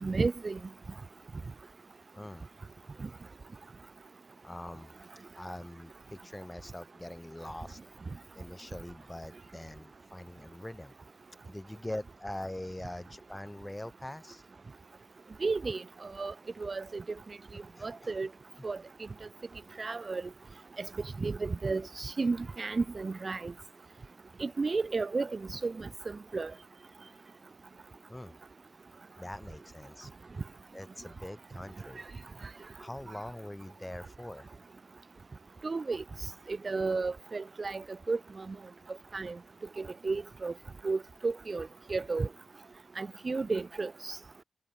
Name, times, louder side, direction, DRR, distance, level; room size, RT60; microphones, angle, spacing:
voice 1, 0.0-0.6 3.0-3.1 15.4-15.8 16.2-16.3 16.6-17.0 17.8-18.3 18.6-18.8 19.8-20.2 20.8-20.9 21.2-23.5 24.4-26.5 35.6-36.0 36.5-38.6 39.1-39.4 39.8-40.5 40.8-42.3 43.0-44.2, right 4 dB, 30° right, 0.3 m, -33 dB
voice 2, 2.1-2.5 4.4-4.9 5.3-7.8 8.4-10.9 11.5-14.4 17.7-18.1 28.1-28.3 29.2-30.1 30.7-32.1 32.8-34.5, left 1 dB, 10° left, 2.6 m, -43 dB
wide cardioid pair, 155°, 0 cm